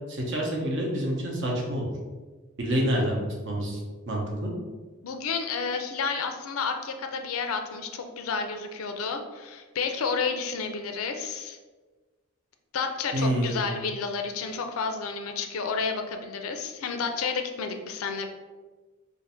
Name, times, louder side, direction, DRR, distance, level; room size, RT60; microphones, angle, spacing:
voice 1, 0.1-1.9 2.6-4.5 13.1-13.6, equal, 60° right, -1 dB, 0.8 m, -27 dB
voice 2, 5.0-11.6 12.7-18.3, left 5 dB, 80° left, 6 dB, 0.4 m, -31 dB
2.6 x 2.5 x 4.2 m, 1.3 s
head